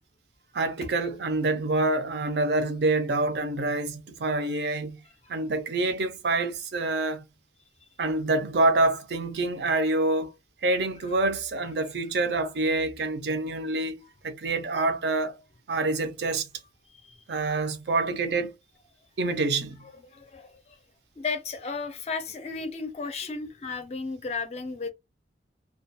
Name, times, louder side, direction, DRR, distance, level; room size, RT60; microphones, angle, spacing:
voice 1, 0.5-5.0 5.3-7.2 8.0-10.3 10.6-15.4 15.7-16.5 17.3-18.5 19.2-19.8, right 2 dB, 70° right, 0.5 m, -26 dB
voice 2, 20.0-20.6 21.2-24.9, left 4 dB, 35° left, 0.4 m, -34 dB
2.3 x 2.2 x 2.6 m
head